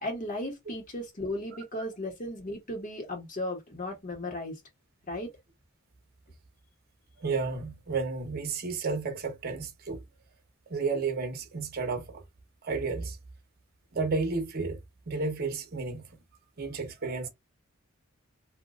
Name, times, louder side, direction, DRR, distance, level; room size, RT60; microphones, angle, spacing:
voice 1, 0.0-4.6 5.1-5.3, left 1 dB, 40° left, 1.5 m, -35 dB
voice 2, 7.2-10.0 10.7-12.2 12.6-13.2 13.9-14.8 15.1-16.2 16.6-17.3, right 4 dB, 50° right, 0.9 m, -32 dB
3.0 x 2.7 x 2.4 m
head